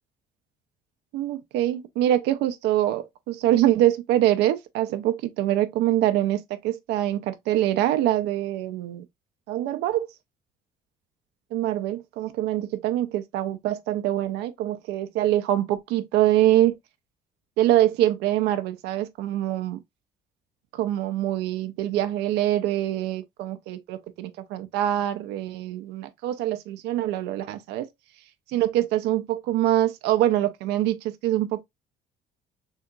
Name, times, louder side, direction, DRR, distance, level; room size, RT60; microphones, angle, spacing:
voice 1, 1.1-9.0 9.5-10.1 11.5-16.8 17.6-19.8 20.7-27.9 28.5-31.6, right 13 dB, 85° right, 0.4 m, -24 dB
3.5 x 2.8 x 2.2 m
cardioid pair, 110°, 17 cm